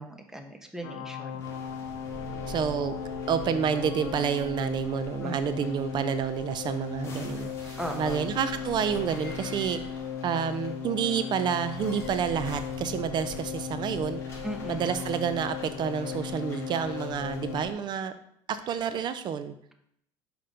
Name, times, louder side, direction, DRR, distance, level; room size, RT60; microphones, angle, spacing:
voice 1, 0.0-1.5 5.2-5.4 7.8-8.3 14.4-14.9, right 1 dB, 5° right, 4 dB, 1.1 m, -38 dB
sound 1, 0.8-17.6, left 7 dB, 80° left, 1.0 m, -37 dB
sound 2, 1.4-17.7, left 1 dB, 25° left, 3.1 m, -44 dB
voice 2, 2.5-2.9 3.3-9.8 10.2-14.4 14.7-18.1 18.5-19.5, right 7 dB, 45° right, 11 dB, 0.6 m, -29 dB
5.9 x 5.1 x 5.1 m, 0.70 s
supercardioid pair, 120°, 11 cm